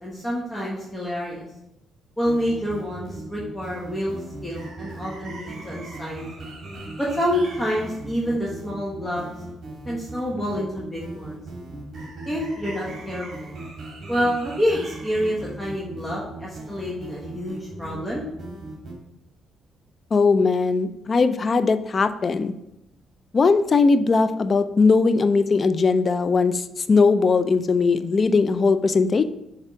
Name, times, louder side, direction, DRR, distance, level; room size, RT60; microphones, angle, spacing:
voice 1, 0.0-1.4 2.2-6.5 7.0-9.2 9.8-11.4 12.2-13.5 14.1-18.2, equal, 10° left, -5 dB, 1.4 m, -27 dB
sound 1, 2.2-18.9, right 2 dB, 55° right, 2.3 m, -38 dB
voice 2, 20.1-22.5 23.3-29.2, left 4 dB, 40° left, 11 dB, 0.4 m, -19 dB
6.7 x 3.5 x 4.8 m, 0.85 s
cardioid pair, 90°, 0 cm